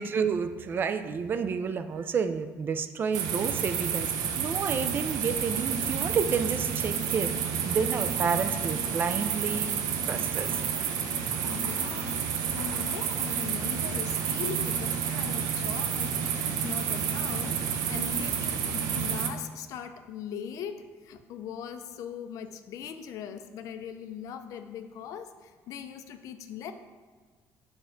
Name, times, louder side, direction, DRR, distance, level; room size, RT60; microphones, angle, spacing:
voice 1, 0.0-4.1 4.4-7.3 7.6-9.7 10.0-10.5, right 6 dB, 35° right, 9 dB, 0.4 m, -30 dB
sound 1, 3.1-19.3, right 7 dB, 80° right, 0.7 m, -30 dB
voice 2, 10.2-10.6 11.5-26.7, left 8 dB, 60° left, 8 dB, 0.5 m, -40 dB
6.5 x 3.5 x 5.7 m, 1.5 s
cardioid pair, 150°, 6 cm